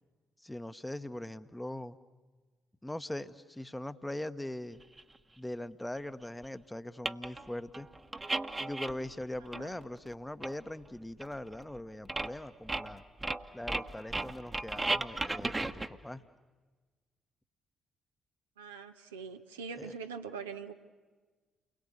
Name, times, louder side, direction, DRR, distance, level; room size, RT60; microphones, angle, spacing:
voice 1, 0.4-2.0 2.8-4.8 5.4-7.9 8.6-13.0 13.5-16.2 19.8-19.9, left 1 dB, 10° left, 11 dB, 1.1 m, -41 dB
sound 1, 5.0-5.1 6.4-6.5 7.0-7.5 7.7-9.2 9.5-10.1 10.4-10.5 10.9-11.0 11.2-11.8 12.0-12.4 12.7-15.9, right 2 dB, 20° right, 1.2 m, -35 dB
voice 2, 18.6-20.7, right 5 dB, 80° right, 5 dB, 0.9 m, -43 dB
29.5 x 21.5 x 8.3 m, 1.4 s
figure-of-eight pair, 40°, 0 cm